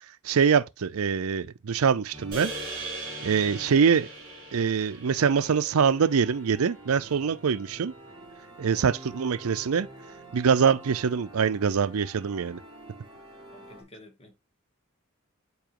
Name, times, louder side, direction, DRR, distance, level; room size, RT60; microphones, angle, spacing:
voice 1, 0.2-2.5 3.2-4.1 4.5-7.9 8.6-9.9 10.3-12.6, right 6 dB, 85° right, 0.5 m, -24 dB
sound 1, 2.1-13.8, right 1 dB, 20° right, 2.0 m, -48 dB
sound 2, 2.3-6.7, right 2 dB, 40° right, 3.3 m, -40 dB
voice 2, 13.5-14.4, left 1 dB, 30° left, 1.3 m, -51 dB
7.0 x 4.8 x 2.9 m
head